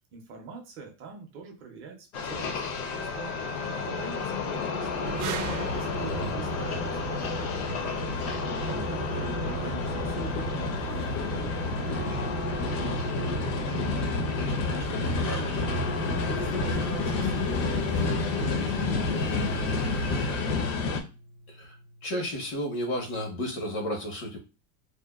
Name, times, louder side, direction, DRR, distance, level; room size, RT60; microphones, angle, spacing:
voice 1, 0.1-5.3 5.7-14.2 14.7-20.5, right 5 dB, 30° right, 2 dB, 0.4 m, -44 dB
sound 1, 2.1-21.0, left 4 dB, 65° left, 0.7 m, -30 dB
sound 2, 4.5-23.4, left 1 dB, 30° left, 0.4 m, -41 dB
sound 3, 5.0-20.3, right 4 dB, 90° right, 0.5 m, -37 dB
voice 2, 6.0-6.3 21.5-21.8 22.0-24.4, equal, 85° left, 2 dB, 1.3 m, -32 dB
2.7 x 2.1 x 2.3 m, 0.31 s
supercardioid pair, 160°, 43 cm